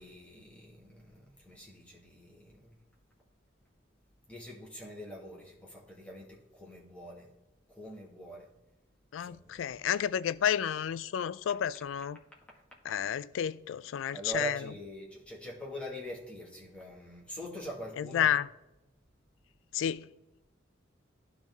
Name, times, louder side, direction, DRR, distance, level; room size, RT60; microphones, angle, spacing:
voice 1, 0.0-2.8 4.3-7.3 7.7-8.5 9.2-9.5 14.1-18.3, equal, 5° left, 1.7 m, -43 dB
voice 2, 9.1-12.2 12.8-14.7 18.0-18.5 19.7-20.1, left 9 dB, 85° left, 0.3 m, -31 dB
11.5 x 4.1 x 3.5 m
head